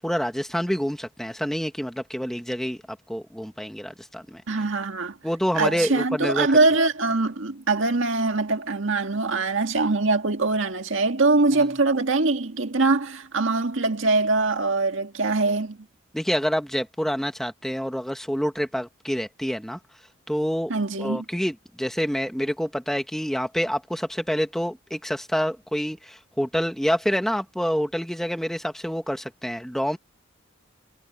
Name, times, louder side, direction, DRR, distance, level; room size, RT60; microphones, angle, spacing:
voice 1, 0.0-2.8 3.1-4.4 5.2-6.5 16.1-19.8 20.3-20.7 21.0-30.0, equal, ahead, 1.5 m, -27 dB
voice 2, 4.5-5.2 5.5-15.8 20.7-21.2, right 3 dB, 75° right, 1.8 m, -23 dB
head